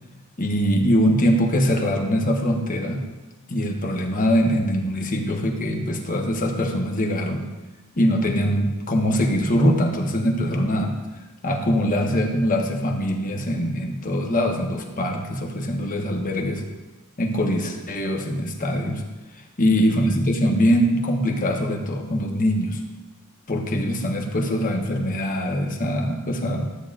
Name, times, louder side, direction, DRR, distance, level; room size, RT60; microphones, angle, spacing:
voice 1, 0.4-3.0 3.5-7.4 8.0-10.9 11.4-16.6 17.2-19.0 19.6-22.8 23.5-26.6, equal, 40° left, 2 dB, 1.0 m, -22 dB
13.0 x 8.5 x 2.5 m, 1.2 s
head